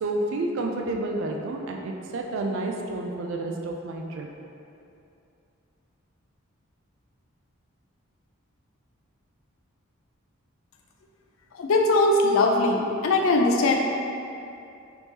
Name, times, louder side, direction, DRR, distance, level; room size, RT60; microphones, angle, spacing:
voice 1, 0.0-4.3, right 2 dB, 60° right, 1 dB, 0.3 m, -30 dB
voice 2, 11.5-13.8, left 2 dB, 70° left, 1 dB, 0.4 m, -21 dB
3.6 x 2.8 x 2.8 m, 2.6 s
head